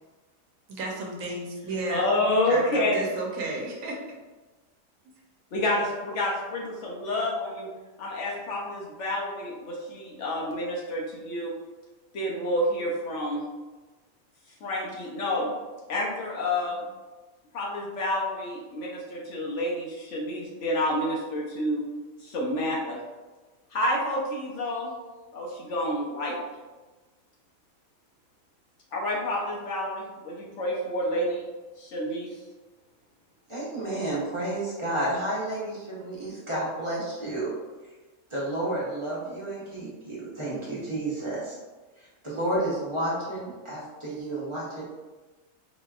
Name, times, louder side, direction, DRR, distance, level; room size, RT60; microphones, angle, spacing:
voice 1, 0.7-2.1 2.4-4.0, right 2 dB, 70° right, -1 dB, 1.1 m, -33 dB
voice 2, 1.9-3.0 5.5-7.7 8.0-11.5 12.1-13.4 14.6-15.5 15.9-16.8 17.5-21.8 22.2-23.0 23.7-24.9 25.3-26.4 28.9-31.4 31.8-32.3, left 1 dB, 65° left, -3 dB, 0.9 m, -29 dB
voice 3, 33.5-37.5 38.3-41.6 42.0-44.8, right 1 dB, 25° right, -7 dB, 0.8 m, -31 dB
4.0 x 2.8 x 2.4 m, 1.2 s
omnidirectional pair, 1.5 m